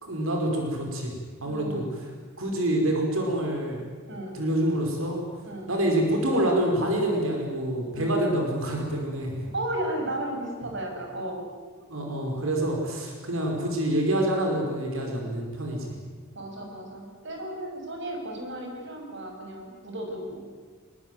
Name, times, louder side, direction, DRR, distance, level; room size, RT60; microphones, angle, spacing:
voice 1, 0.0-2.1 2.4-3.8 4.3-5.2 5.7-9.5 11.9-16.0, right 1 dB, 80° right, 1 dB, 5.2 m, -27 dB
voice 2, 1.4-1.9 4.1-4.4 5.4-5.7 7.9-8.4 9.5-11.4 16.3-20.4, right 1 dB, 60° right, 2 dB, 6.7 m, -34 dB
22.5 x 21.5 x 9.5 m, 1.5 s
head